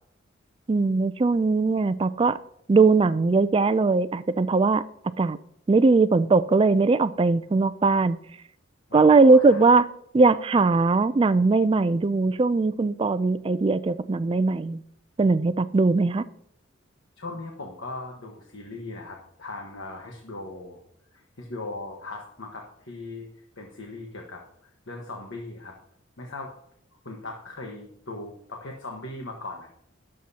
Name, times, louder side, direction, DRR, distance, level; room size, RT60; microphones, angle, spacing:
voice 1, 0.7-2.4 2.7-4.8 5.2-5.4 5.7-8.2 8.9-9.8 10.1-14.8 15.2-16.2, right 3 dB, 25° right, 14 dB, 0.3 m, -20 dB
voice 2, 8.9-9.6 17.2-20.8 21.1-23.3 23.6-25.7 26.2-26.5 27.0-29.7, left 2 dB, 70° left, 1 dB, 1.3 m, -38 dB
20.5 x 7.6 x 2.8 m, 0.71 s
head